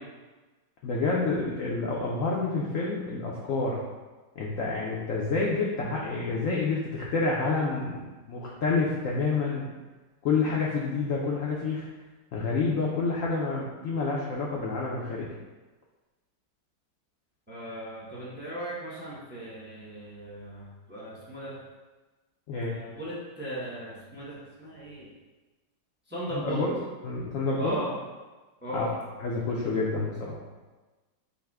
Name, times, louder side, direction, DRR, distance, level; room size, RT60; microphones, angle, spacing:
voice 1, 0.8-3.8 4.4-9.7 10.2-11.9 12.3-15.3 22.5-22.7 26.3-26.8 27.0-27.8 28.7-30.4, left 3 dB, 80° left, -3 dB, 0.7 m, -28 dB
voice 2, 17.5-21.5 22.5-25.1 26.1-26.6 27.6-27.9 28.6-28.9, right 1 dB, 10° right, -8 dB, 0.7 m, -37 dB
5.4 x 2.1 x 4.7 m, 1.2 s
omnidirectional pair, 2.1 m